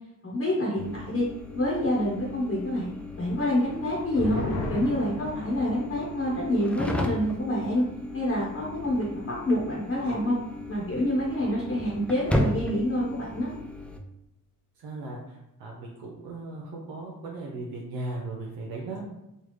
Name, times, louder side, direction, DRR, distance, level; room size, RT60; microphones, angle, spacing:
voice 1, 0.2-1.3 1.5-4.4 4.7-7.8 8.1-10.4 10.7-13.5, left 1 dB, 35° left, -5 dB, 1.0 m, -27 dB
sound 1, 0.8-14.0, left 1 dB, 5° left, 0.4 m, -35 dB
sound 2, 3.6-10.5 10.8-10.9 11.3-11.8, left 2 dB, 90° left, 0.7 m, -38 dB
voice 2, 14.8-19.0, right 2 dB, 80° right, -2 dB, 0.7 m, -37 dB
3.3 x 2.3 x 3.2 m, 0.88 s
cardioid pair, 65°, 36 cm